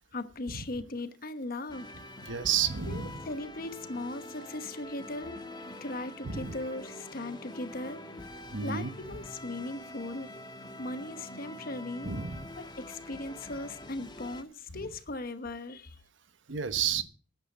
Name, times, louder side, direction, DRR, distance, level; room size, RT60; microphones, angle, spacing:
voice 1, 0.0-1.9 2.9-5.4 5.8-8.0 8.3-10.3 10.8-12.2 12.6-16.0, left 2 dB, 50° left, 1.1 m, -38 dB
sound 1, 1.7-14.4, left 1 dB, 25° left, 1.3 m, -45 dB
voice 2, 2.2-3.2 6.3-6.5 8.5-8.9 12.0-12.4 14.7-14.8 16.5-17.0, right 8 dB, 80° right, 1.1 m, -31 dB
9.7 x 9.4 x 7.3 m
head